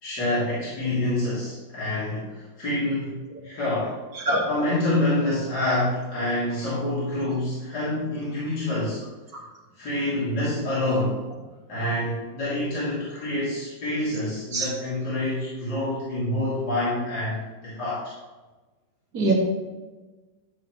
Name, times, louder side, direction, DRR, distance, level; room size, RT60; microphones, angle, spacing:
voice 1, 0.0-3.1 3.4-3.9 4.4-9.0 9.8-11.2 11.7-18.0, left 1 dB, 60° left, -10 dB, 3.4 m, -27 dB
voice 2, 4.2-4.4 14.5-14.7 19.1-19.3, right 2 dB, 55° right, -2 dB, 2.3 m, -22 dB
12.0 x 7.3 x 3.1 m, 1.2 s
omnidirectional pair, 2.0 m